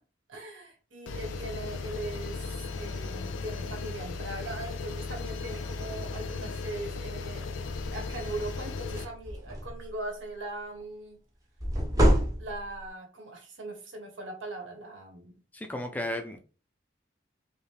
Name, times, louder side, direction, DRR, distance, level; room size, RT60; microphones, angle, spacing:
voice 1, 0.3-2.5 2.8-7.4 7.9-11.2 12.4-15.3, right 2 dB, 85° right, 1.4 m, -40 dB
sound 1, 1.1-9.1, left 4 dB, 80° left, 0.4 m, -36 dB
sound 2, 7.7-7.9 8.4-8.5 8.8-9.9 11.6-12.8, equal, 20° right, 0.7 m, -26 dB
voice 2, 15.5-16.4, left 1 dB, 10° left, 0.4 m, -34 dB
4.9 x 2.2 x 3.3 m
head